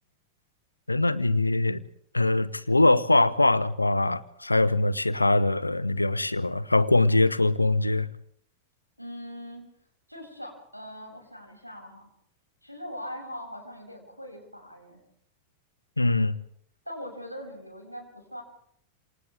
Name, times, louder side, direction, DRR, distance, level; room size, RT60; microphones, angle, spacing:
voice 1, 0.9-1.8 2.1-8.1 16.0-16.4, left 2 dB, 85° left, 1.0 m, -22 dB
voice 2, 9.0-9.7 10.1-12.1 12.6-15.0 16.9-18.4, equal, 90° right, 7.6 m, -41 dB
29.0 x 28.0 x 3.7 m
figure-of-eight pair, 90°, 0 cm